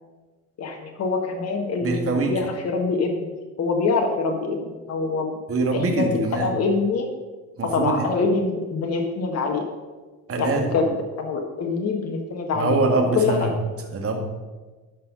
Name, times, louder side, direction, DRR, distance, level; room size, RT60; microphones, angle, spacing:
voice 1, 0.6-3.3 3.6-5.3 5.7-7.1 7.7-9.6 10.4-12.8 13.1-13.4, left 4 dB, 30° left, 3 dB, 1.6 m, -25 dB
voice 2, 1.8-2.3 5.5-6.5 7.6-8.1 10.3-10.7 12.5-13.5 13.9-14.2, right 3 dB, 30° right, 3 dB, 2.0 m, -23 dB
11.5 x 5.6 x 5.4 m, 1.3 s
figure-of-eight pair, 70°, 47 cm